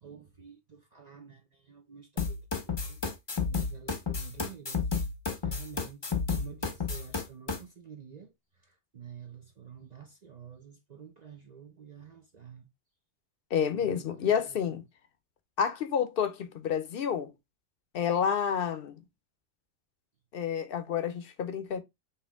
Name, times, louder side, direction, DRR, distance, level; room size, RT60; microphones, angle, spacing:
voice 1, 0.0-2.4 2.6-3.0 3.5-4.8 5.4-8.3 8.9-12.7 13.7-14.3, right 7 dB, 45° right, 0.6 m, -49 dB
sound 1, 2.2-7.6, left 5 dB, 30° left, 0.6 m, -31 dB
voice 2, 13.5-14.8 15.6-17.3 17.9-19.0 20.3-21.8, left 8 dB, 55° left, 0.8 m, -29 dB
4.4 x 3.0 x 3.5 m
omnidirectional pair, 1.2 m